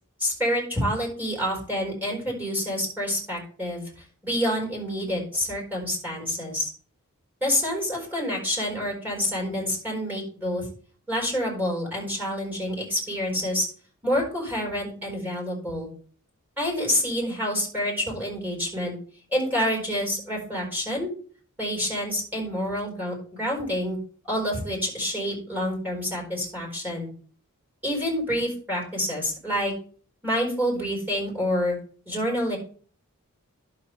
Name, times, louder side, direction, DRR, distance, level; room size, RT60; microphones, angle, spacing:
voice 1, 0.2-3.9 4.2-6.7 7.4-10.7 11.1-13.7 14.0-15.9 16.6-18.9 19.3-21.1 21.6-24.0 24.3-27.1 27.8-29.7 30.2-31.8 32.1-32.6, equal, 10° right, -2 dB, 4.2 m, -27 dB
11.5 x 6.6 x 3.2 m, 0.44 s
head